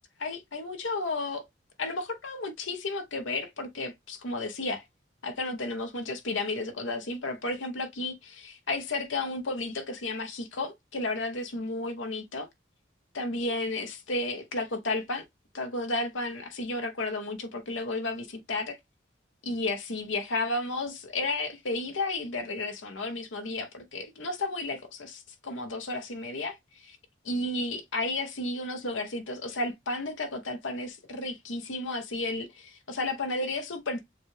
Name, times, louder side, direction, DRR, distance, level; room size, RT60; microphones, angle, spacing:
voice 1, 0.2-1.4 1.8-4.8 5.2-12.5 13.1-15.2 15.5-18.8 19.4-26.6 26.8-27.0 27.2-34.0, left 2 dB, 85° left, 1.0 m, -33 dB
7.0 x 2.4 x 3.1 m
head